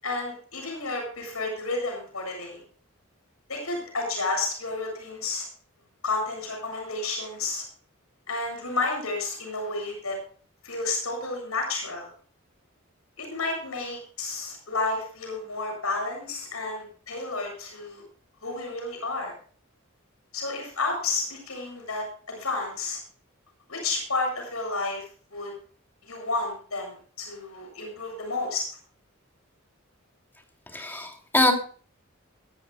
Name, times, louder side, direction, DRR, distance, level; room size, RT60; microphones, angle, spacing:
voice 1, 0.0-2.6 3.5-5.5 6.0-7.6 8.3-10.2 10.6-12.1 13.2-18.0 18.4-19.3 20.3-23.0 23.7-25.1 25.3-25.5 26.0-28.6, left 3 dB, 85° left, 2 dB, 7.3 m, -31 dB
voice 2, 30.7-31.5, left 1 dB, 10° left, 2 dB, 2.8 m, -23 dB
22.0 x 13.0 x 2.2 m, 0.43 s
head